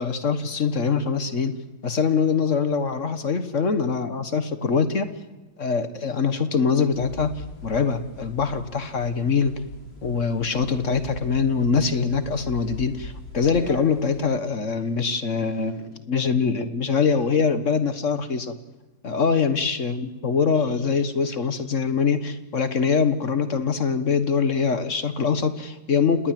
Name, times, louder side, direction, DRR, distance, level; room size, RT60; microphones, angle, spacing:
voice 1, 0.0-1.5 1.8-5.1 5.6-7.3 7.6-9.5 10.0-18.5 19.0-26.3, left 5 dB, 45° left, 10 dB, 1.4 m, -23 dB
sound 1, 6.9-14.2, left 1 dB, 80° left, 6.0 m, -41 dB
29.5 x 19.0 x 7.6 m, 1.1 s
omnidirectional pair, 2.1 m